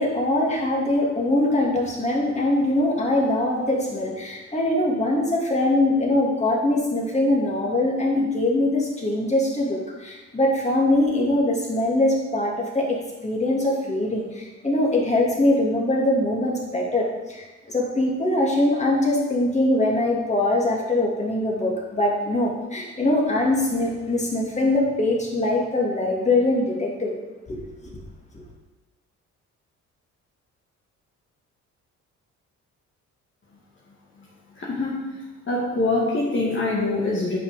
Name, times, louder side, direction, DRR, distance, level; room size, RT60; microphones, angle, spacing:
voice 1, 0.0-27.1 27.5-28.0, left 1 dB, 25° left, -2 dB, 2.8 m, -22 dB
voice 2, 34.6-35.0 35.5-37.4, left 2 dB, 40° left, -5 dB, 2.2 m, -24 dB
9.8 x 6.1 x 5.3 m, 1.2 s
cardioid pair, 90°, 30 cm